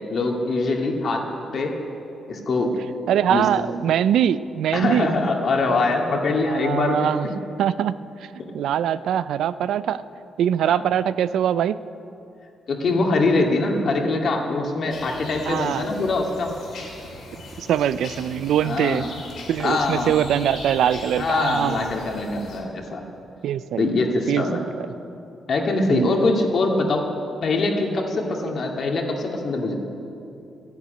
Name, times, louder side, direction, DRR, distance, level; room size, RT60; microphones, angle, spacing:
voice 1, 0.1-1.3 1.5-1.8 2.3-2.8 3.3-3.5 4.7-7.1 8.4-8.5 10.7-10.8 12.7-16.5 18.6-19.1 19.6-20.1 21.2-23.0 23.8-24.6 25.5-27.1 27.4-29.8, left 3 dB, 55° left, 1 dB, 2.2 m, -23 dB
voice 2, 3.1-5.1 6.4-7.3 7.6-8.0 8.5-10.0 10.4-11.8 15.5-15.9 17.6-19.0 19.5-21.9 23.4-23.9 24.3-24.7 25.9-26.1, right 10 dB, 80° right, 15 dB, 0.4 m, -22 dB
sound 1, 14.9-22.6, left 2 dB, 75° left, 4.0 m, -39 dB
13.0 x 10.5 x 9.1 m, 2.7 s
cardioid pair, 110°, 0 cm